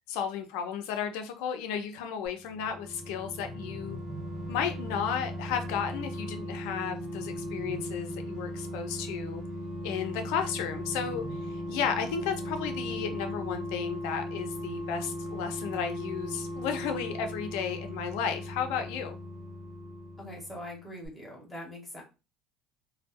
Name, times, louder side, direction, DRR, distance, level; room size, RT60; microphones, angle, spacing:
voice 1, 0.1-4.0 4.5-9.4 9.8-19.2, left 7 dB, 80° left, 6 dB, 0.5 m, -33 dB
sound 1, 2.4-20.8 21.1-21.2, equal, 50° right, 1.0 m, -38 dB
sound 2, 3.0-4.8 6.6-8.5 10.3-12.3, right 1 dB, 25° right, 0.7 m, -48 dB
voice 2, 20.2-22.0, left 1 dB, ahead, -3 dB, 0.9 m, -42 dB
2.3 x 2.0 x 3.4 m, 0.30 s
cardioid pair, 160°, 0 cm